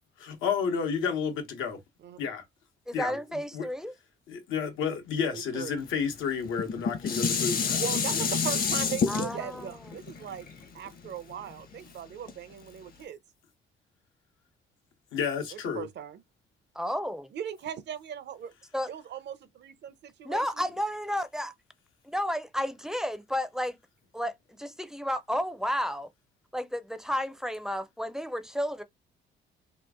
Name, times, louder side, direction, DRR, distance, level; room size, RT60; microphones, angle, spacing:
voice 1, 0.2-1.8 2.2-2.4 2.9-3.2 3.5-3.7 4.3-7.8 8.1-8.2 15.1-15.9, left 6 dB, 85° left, 1.0 m, -31 dB
voice 2, 2.9-3.9 9.1-9.5 16.7-17.3 18.7-18.9 20.2-21.5 22.0-23.8 24.1-26.1 26.5-28.8, equal, 5° right, 0.5 m, -32 dB
voice 3, 5.3-5.7 7.7-10.5 10.7-13.2 15.5-16.2 17.3-18.5 18.9-20.7, right 9 dB, 60° right, 0.6 m, -39 dB
Dishes pots and pans, 6.5-11.7 12.3-12.4, left 5 dB, 50° left, 0.8 m, -29 dB
3.0 x 2.4 x 3.5 m
cardioid pair, 90°, 20 cm